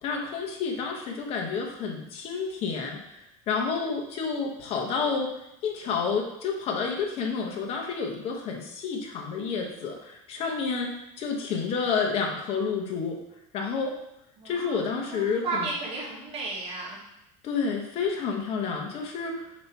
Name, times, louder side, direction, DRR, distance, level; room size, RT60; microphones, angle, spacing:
voice 1, 0.0-13.2 13.5-13.9 14.4-15.7 17.4-19.4, left 5 dB, 35° left, 1 dB, 1.0 m, -30 dB
voice 2, 14.4-17.0, right 3 dB, 30° right, -5 dB, 1.2 m, -34 dB
7.3 x 2.9 x 4.6 m, 0.86 s
cardioid pair, 175°, 17 cm